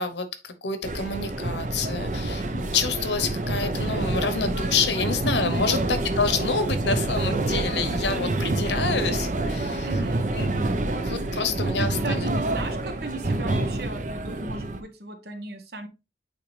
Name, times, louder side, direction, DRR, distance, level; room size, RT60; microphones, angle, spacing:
voice 1, 0.0-9.9 10.3-10.5 11.0-12.3, left 4 dB, 75° left, 1.0 m, -28 dB
sound 1, 0.8-14.8, right 2 dB, 45° right, 0.7 m, -27 dB
voice 2, 5.4-5.8 9.8-10.3 11.7-15.9, right 2 dB, 60° right, 1.1 m, -37 dB
8.5 x 3.4 x 3.3 m
head